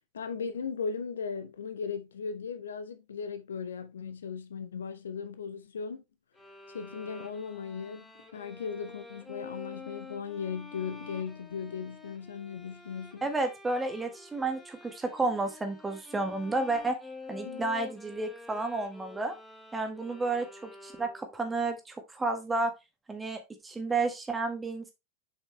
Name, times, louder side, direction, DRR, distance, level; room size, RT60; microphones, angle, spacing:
voice 1, 0.1-6.0 6.7-13.3 17.4-17.6, left 6 dB, 70° left, 0.7 m, -37 dB
sound 1, 6.3-21.5, left 3 dB, 10° left, 1.6 m, -48 dB
voice 2, 13.2-16.9 17.3-19.3 19.7-22.7 23.1-24.9, right 3 dB, 15° right, 1.6 m, -31 dB
7.1 x 5.2 x 3.0 m
figure-of-eight pair, 85°, 0 cm